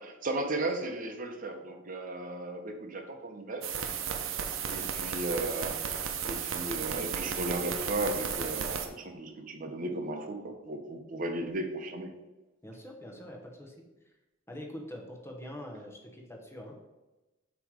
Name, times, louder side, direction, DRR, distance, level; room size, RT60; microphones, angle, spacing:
voice 1, 0.0-3.7 4.7-12.1, right 2 dB, 45° right, 4 dB, 0.8 m, -35 dB
sound 1, 3.6-8.9, right 7 dB, 80° right, 0.7 m, -34 dB
voice 2, 12.6-13.8 14.5-16.8, left 1 dB, 15° left, 1 dB, 1.0 m, -44 dB
7.7 x 3.1 x 4.7 m, 1.1 s
head